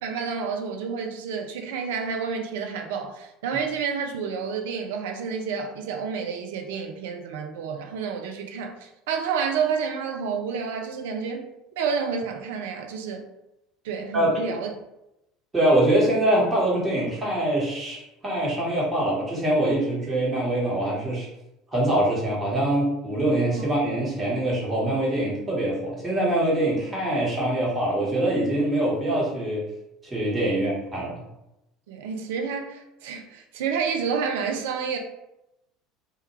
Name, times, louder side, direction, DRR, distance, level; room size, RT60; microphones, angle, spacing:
voice 1, 0.0-11.4 11.8-13.3 13.8-14.7 30.5-30.6 31.9-35.0, right 6 dB, 65° right, 4 dB, 0.3 m, -29 dB
voice 2, 14.1-14.6 15.5-21.3 21.7-29.7 30.0-31.2, right 1 dB, 20° right, -5 dB, 1.1 m, -24 dB
2.2 x 2.2 x 3.0 m, 0.89 s
figure-of-eight pair, 65°, 0 cm